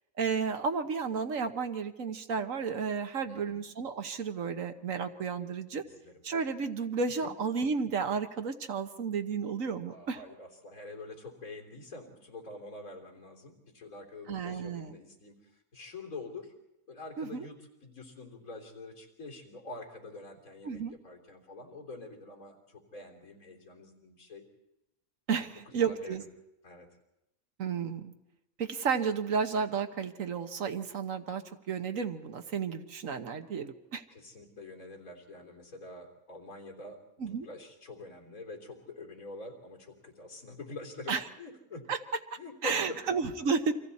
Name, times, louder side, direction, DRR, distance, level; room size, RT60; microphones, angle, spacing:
voice 1, 0.2-5.8 6.2-10.2 14.3-15.0 17.2-17.5 20.6-20.9 25.3-26.2 27.6-28.1 28.6-34.0 37.2-37.5 41.1-41.2 41.9-42.0 42.3-43.7, right 5 dB, 70° right, 8 dB, 1.5 m, -32 dB
voice 2, 3.3-3.6 5.8-6.1 7.2-7.3 9.9-15.4 15.7-16.5 16.9-17.6 17.8-24.4 25.4-25.5 25.8-26.2 26.6-26.9 34.1-37.0 37.3-41.8 42.4-43.0, left 2 dB, 85° left, 0 dB, 4.0 m, -46 dB
29.5 x 25.0 x 4.2 m, 0.90 s
omnidirectional pair, 1.5 m